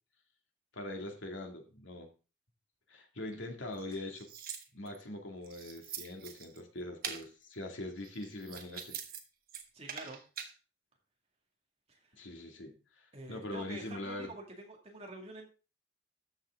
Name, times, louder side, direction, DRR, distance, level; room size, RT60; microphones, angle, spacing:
voice 1, 0.7-2.1 2.9-4.3 4.7-9.0 12.1-14.3, left 1 dB, 75° left, 3 dB, 2.2 m, -42 dB
sound 1, 3.7-5.0 5.4-6.6 7.0-7.3 8.0-9.2 9.5-10.5, right 8 dB, 50° right, 1.2 m, -44 dB
voice 2, 9.7-10.2 11.9-12.1 13.1-15.5, right 2 dB, 30° right, 0 dB, 2.3 m, -47 dB
13.5 x 5.9 x 3.7 m, 0.33 s
head